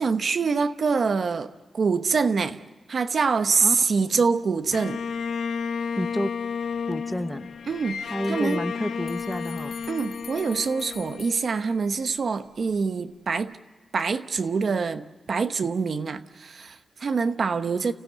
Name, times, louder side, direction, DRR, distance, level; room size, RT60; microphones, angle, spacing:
voice 1, 0.0-2.6 2.9-5.0 7.7-8.6 9.9-13.6 13.9-17.9, right 5 dB, 55° right, 0.9 m, -25 dB
voice 2, 3.6-4.1 6.0-6.3 6.9-7.5 8.1-9.7, equal, ahead, 0.8 m, -30 dB
Bowed string instrument, 4.7-12.0, left 6 dB, 85° left, 0.8 m, -32 dB
sound 1, 9.1-12.1, left 5 dB, 55° left, 1.1 m, -47 dB
29.5 x 16.0 x 8.0 m
wide cardioid pair, 145°, 0 cm